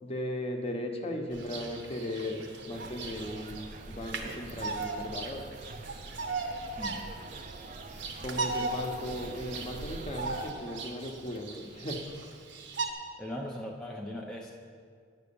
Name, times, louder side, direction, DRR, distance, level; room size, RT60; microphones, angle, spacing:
voice 1, 0.0-5.5 8.2-12.0, left 1 dB, 30° left, 2 dB, 1.0 m, -37 dB
Bird vocalization bird call bird song, 1.3-12.9, right 3 dB, 65° right, 0.9 m, -38 dB
sound 1, 2.7-10.5, right 2 dB, 40° right, 0.5 m, -45 dB
voice 2, 6.8-7.1 13.2-14.6, left 1 dB, 5° left, -3 dB, 0.6 m, -39 dB
9.7 x 6.2 x 7.0 m, 2.1 s
head